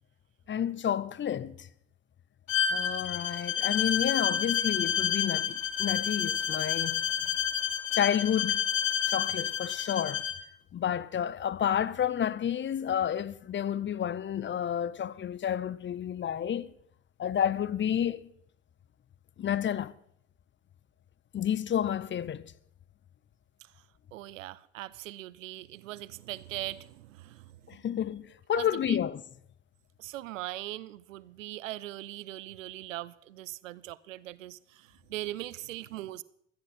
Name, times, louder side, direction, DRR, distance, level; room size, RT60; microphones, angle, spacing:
voice 1, 0.5-1.7 2.7-7.0 7.9-8.7 9.1-10.2 10.7-16.7 17.2-18.3 19.4-19.9 21.3-22.5 27.7-29.2, left 9 dB, 30° left, 0.7 m, -30 dB
Bowed string instrument, 2.5-10.4, left 9 dB, 90° left, 1.0 m, -29 dB
voice 2, 24.1-27.6 28.5-29.0 30.0-36.2, right 15 dB, 85° right, 0.6 m, -40 dB
17.0 x 13.5 x 4.3 m
hypercardioid pair, 65°, 38 cm